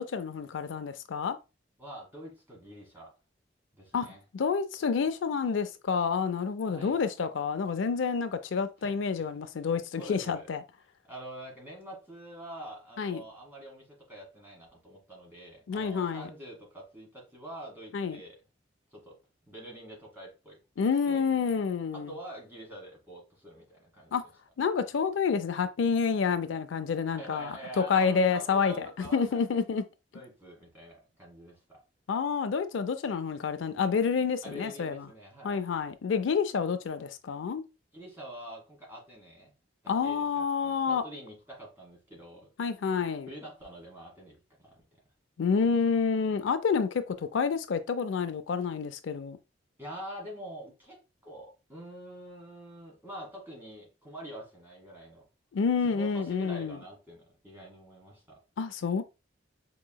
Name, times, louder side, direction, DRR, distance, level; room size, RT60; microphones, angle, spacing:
voice 1, 0.0-1.4 3.9-4.1 4.3-10.6 13.0-13.2 15.7-16.3 17.9-18.2 20.8-22.1 24.1-24.2 24.6-28.9 29.1-29.8 32.1-35.1 35.4-37.6 39.9-41.0 42.6-43.3 45.4-49.4 55.5-56.8 58.6-59.0, left 5 dB, 80° left, 0.4 m, -28 dB
voice 2, 1.8-3.1 3.7-4.2 6.7-7.0 8.8-9.3 10.0-10.5 11.0-18.4 18.9-19.2 19.5-21.2 21.9-24.2 27.1-29.4 30.1-31.8 34.4-35.6 37.9-39.5 39.8-42.5 43.3-44.8 45.5-45.7 49.8-55.2 55.8-58.4, right 1 dB, 10° right, 1.7 m, -46 dB
4.6 x 3.0 x 2.2 m
head